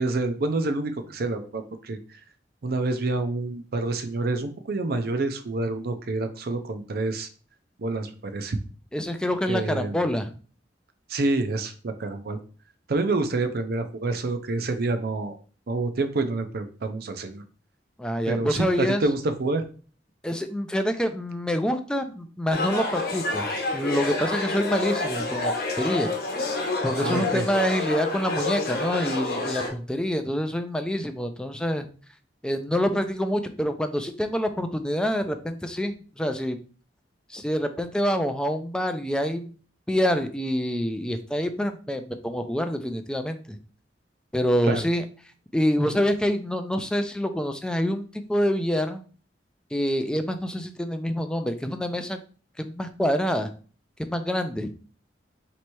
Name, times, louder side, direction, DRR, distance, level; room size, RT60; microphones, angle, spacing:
voice 1, 0.0-2.0 2.6-7.3 7.8-8.6 9.5-10.0 11.1-12.4 12.9-15.4 15.7-17.4 18.3-19.6 27.0-27.4 44.7-44.8, right 2 dB, 60° right, 9 dB, 0.5 m, -27 dB
voice 2, 8.9-10.3 18.0-19.0 20.2-26.1 26.8-31.9 32.4-36.6 37.3-39.5 39.9-43.6 44.3-45.0 45.5-49.0 49.7-52.2 52.6-53.5 54.0-54.7, equal, 5° left, 7 dB, 0.4 m, -26 dB
sound 1, 22.5-29.7, left 2 dB, 55° left, 0.9 m, -28 dB
3.2 x 3.0 x 4.5 m, 0.40 s
head